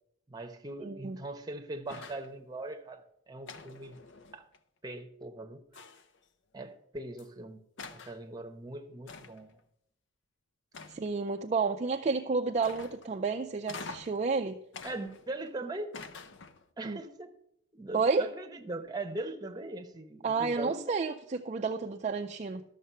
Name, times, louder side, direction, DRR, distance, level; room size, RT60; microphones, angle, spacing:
voice 1, 0.3-4.0 4.3-4.4 4.8-5.6 6.5-7.7 7.9-9.6 10.7-10.9 14.8-15.9 16.8-17.3 17.7-20.8, right 2 dB, 20° right, 0.9 m, -40 dB
voice 2, 0.8-1.2 10.9-14.6 16.8-17.0 17.9-18.2 20.2-22.6, right 4 dB, 35° right, 0.4 m, -31 dB
sound 1, 1.9-2.3 3.5-4.6 5.7-6.2 7.2-7.3 7.8-8.2 9.1-9.5 10.7-11.3 12.6-13.2 13.7-14.2 14.7-15.5 15.9-16.7, left 4 dB, 65° left, 0.6 m, -46 dB
12.5 x 6.7 x 5.5 m
head